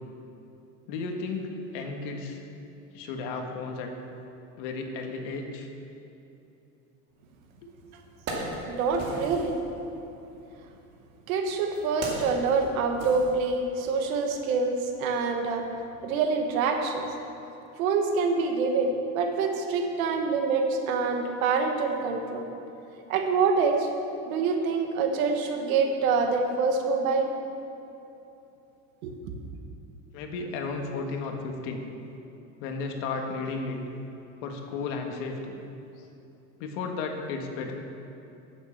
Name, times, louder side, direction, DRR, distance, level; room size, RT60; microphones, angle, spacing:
voice 1, 0.9-2.4 2.9-3.9 4.6-5.7 7.6-7.7 30.1-31.8 32.6-33.8 34.4-35.6 36.0-36.1 36.6-37.7, left 4 dB, 70° left, 3 dB, 1.6 m, -34 dB
Wood, 7.4-7.5 7.9-9.6 10.6-13.9 14.2-14.4, right 2 dB, 40° right, 2.4 m, -38 dB
voice 2, 8.7-9.6 11.3-15.6 16.0-17.0 17.8-22.5 23.1-23.9 24.3-27.3 29.0-29.1, right 4 dB, 90° right, 4 dB, 1.6 m, -26 dB
9.6 x 7.6 x 7.1 m, 2.9 s
supercardioid pair, 145°, 40 cm